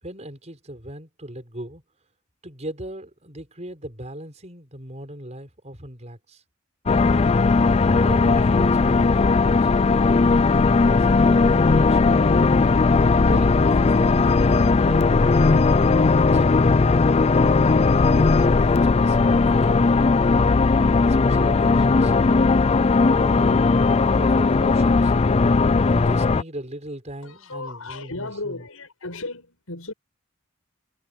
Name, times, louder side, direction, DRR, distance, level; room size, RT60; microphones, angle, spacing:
voice 1, 0.0-1.8 2.4-6.4 7.9-10.1 10.5-12.2 13.2-16.7 18.0-20.0 21.0-22.1 23.1-23.7 24.0-25.1 25.9-28.6, right 1 dB, 30° right, 5.9 m, -38 dB
sound 1, 6.9-26.4, left 4 dB, 30° left, 0.4 m, -18 dB
voice 2, 27.2-29.9, left 2 dB, 85° left, 6.6 m, -35 dB
head